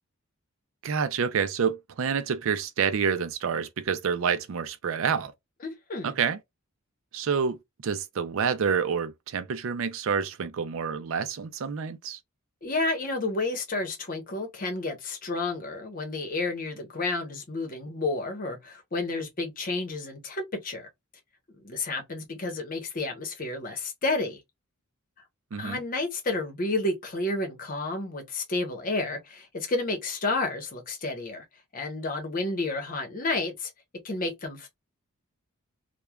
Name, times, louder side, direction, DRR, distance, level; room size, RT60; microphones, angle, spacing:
voice 1, 0.8-5.3 6.0-6.4 7.1-7.6 7.8-12.2 25.5-25.8, right 6 dB, 65° right, 0.4 m, -28 dB
voice 2, 5.6-6.1 12.6-20.9 21.6-24.4 25.6-31.4 31.7-33.7 34.0-34.7, left 2 dB, 40° left, 0.9 m, -31 dB
3.1 x 2.2 x 2.2 m
head